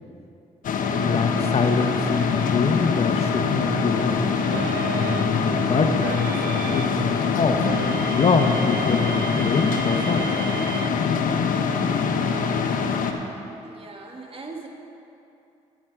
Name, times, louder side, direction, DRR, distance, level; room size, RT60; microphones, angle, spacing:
sound 1, 0.6-13.1, left 5 dB, 60° left, 1.1 m, -24 dB
voice 1, 0.9-4.2 4.9-7.7 8.1-10.3, left 4 dB, 40° left, 5 dB, 1.0 m, -24 dB
sound 2, 4.5-7.1 7.6-10.9, right 8 dB, 75° right, 0.6 m, -33 dB
voice 2, 13.6-14.7, right 3 dB, 35° right, 1 dB, 2.1 m, -39 dB
12.0 x 10.5 x 4.8 m, 2.7 s
supercardioid pair, 60°, 15 cm